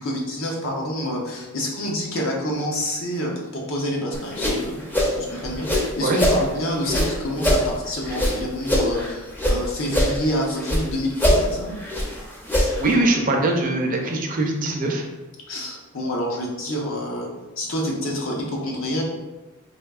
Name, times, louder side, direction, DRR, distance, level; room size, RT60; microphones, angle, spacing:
voice 1, 0.0-4.8 5.2-11.7 15.5-17.3 17.6-19.0, equal, 70° left, -1 dB, 0.7 m, -27 dB
sound 1, 4.1-6.4 6.8-9.6 9.9-10.9 11.1-12.9, equal, 10° left, 0.5 m, -22 dB
voice 2, 12.8-15.0, right 2 dB, 40° right, 2 dB, 0.4 m, -22 dB
3.5 x 2.6 x 2.3 m, 1.1 s
head